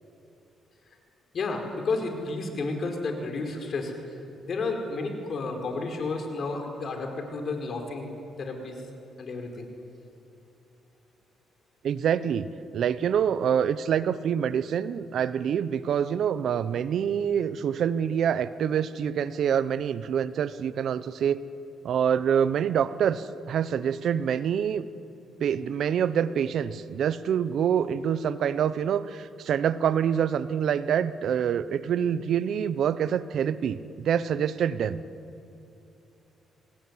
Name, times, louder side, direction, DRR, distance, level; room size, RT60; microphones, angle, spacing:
voice 1, 1.3-8.1 8.4-8.8 9.2-9.7, left 3 dB, 55° left, 4 dB, 5.0 m, -32 dB
voice 2, 11.8-12.5 12.7-21.4 21.8-24.8 25.4-35.0, right 8 dB, 65° right, 14 dB, 0.9 m, -26 dB
26.0 x 19.5 x 9.8 m, 2.8 s
cardioid pair, 90°, 0 cm